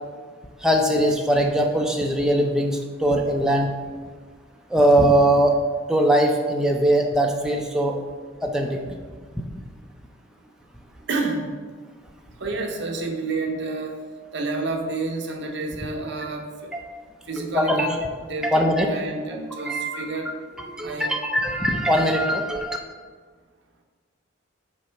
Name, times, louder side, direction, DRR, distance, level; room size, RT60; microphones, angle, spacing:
voice 1, 0.6-3.7 4.7-5.6 5.9-8.0 8.4-8.8 9.4-9.6 16.7-16.8 17.4-17.9 18.4-18.9 19.6-20.1 20.6-22.8, right 1 dB, 5° right, 1 dB, 0.5 m, -21 dB
voice 2, 11.1-11.5 12.4-14.0 14.3-16.7 17.3-20.3 20.8-21.2, right 3 dB, 60° right, 2 dB, 0.8 m, -29 dB
6.6 x 3.9 x 4.4 m, 1.5 s
head